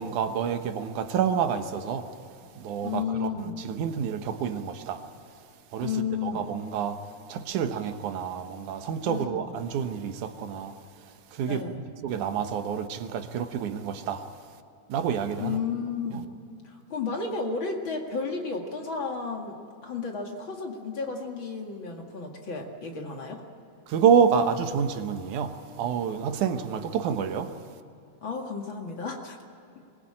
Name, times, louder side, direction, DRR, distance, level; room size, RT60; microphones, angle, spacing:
voice 1, 0.0-2.1 2.6-5.0 5.7-10.8 11.3-14.3 14.9-15.6 23.9-27.6, right 7 dB, 85° right, 2.6 m, -28 dB
voice 2, 2.8-3.5 5.8-6.5 9.0-9.5 11.5-11.8 15.4-16.2 16.6-23.4 28.2-29.4, left 5 dB, 45° left, 2.5 m, -32 dB
23.0 x 20.5 x 8.8 m
omnidirectional pair, 3.4 m